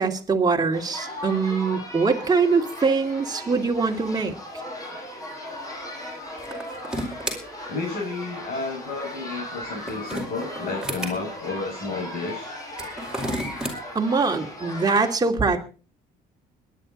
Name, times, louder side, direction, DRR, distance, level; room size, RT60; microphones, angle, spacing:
voice 1, 0.0-4.3 13.9-15.7, right 4 dB, 25° right, 3 dB, 2.6 m, -23 dB
sound 1, 0.7-15.2, left 1 dB, 20° left, 7.5 m, -37 dB
sound 2, 6.4-7.4 9.6-11.1 12.7-13.7, right 1 dB, 5° right, 5.0 m, -31 dB
voice 2, 7.7-12.5, left 3 dB, 60° left, -2 dB, 7.3 m, -31 dB
22.0 x 10.5 x 4.2 m, 0.38 s
cardioid pair, 110°, 17 cm